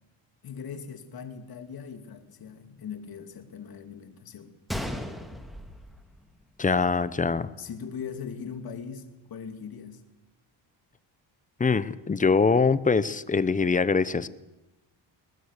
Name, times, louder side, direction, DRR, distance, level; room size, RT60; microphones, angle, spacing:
voice 1, 0.4-4.5 7.6-10.0, left 6 dB, 50° left, 8 dB, 2.6 m, -40 dB
Gunshot gunfire, 4.7-6.7 7.0-7.1 7.8-8.0, equal, ahead, 1.9 m, -36 dB
voice 2, 6.6-7.5 11.6-14.3, left 4 dB, 15° left, 16 dB, 0.7 m, -23 dB
22.0 x 19.5 x 6.6 m, 1.0 s
cardioid pair, 145°, 46 cm